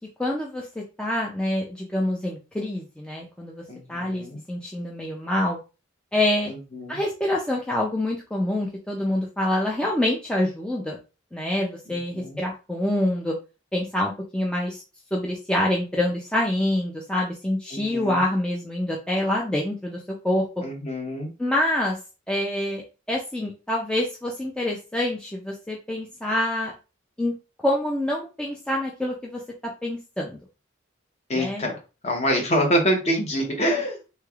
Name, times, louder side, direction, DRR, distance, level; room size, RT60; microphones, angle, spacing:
voice 1, 0.2-3.6 3.9-5.6 6.1-6.5 6.9-11.0 11.3-13.4 13.7-14.8 15.1-20.6 21.4-22.0 22.3-22.8 23.1-26.7 27.2-27.3 27.6-29.4 29.8-30.4 31.3-31.7, left 1 dB, 5° left, -2 dB, 0.4 m, -26 dB
voice 2, 3.7-4.4 6.5-7.0 11.9-12.4 17.7-18.2 20.6-21.3 31.3-31.8 32.0-34.0, equal, 30° left, 2 dB, 0.8 m, -26 dB
3.3 x 3.2 x 2.3 m, 0.31 s
head